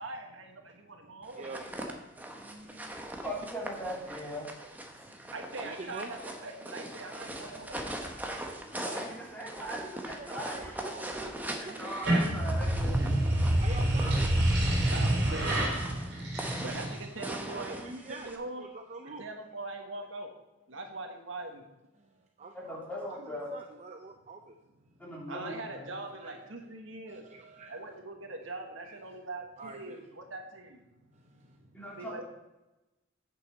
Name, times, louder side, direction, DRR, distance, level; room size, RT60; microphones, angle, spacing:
voice 1, 0.0-2.8 4.9-9.0 14.9-15.7 16.6-18.6 19.0-20.3 20.7-21.6 24.8-25.0 25.3-27.2 27.7-32.3, right 2 dB, 75° right, 4 dB, 1.4 m, -43 dB
sound 1, 1.3-18.4, right 1 dB, 10° right, 1.0 m, -41 dB
voice 2, 1.4-1.7 2.4-3.1 5.6-6.1 7.1-7.9 10.2-12.0 12.9-14.3 17.5-18.3 18.6-19.2 22.4-22.6 23.2-24.5 26.2-26.3 27.1-27.7 28.8-28.9 29.6-30.0, right 3 dB, 35° right, 4 dB, 0.6 m, -46 dB
voice 3, 3.2-4.5 8.9-13.0 22.5-23.5 25.0-25.9 31.7-32.3, equal, 10° left, -5 dB, 3.0 m, -40 dB
sound 2, 11.8-17.1, right 1 dB, 60° right, 2.8 m, -27 dB
8.8 x 6.9 x 5.4 m, 1.0 s
head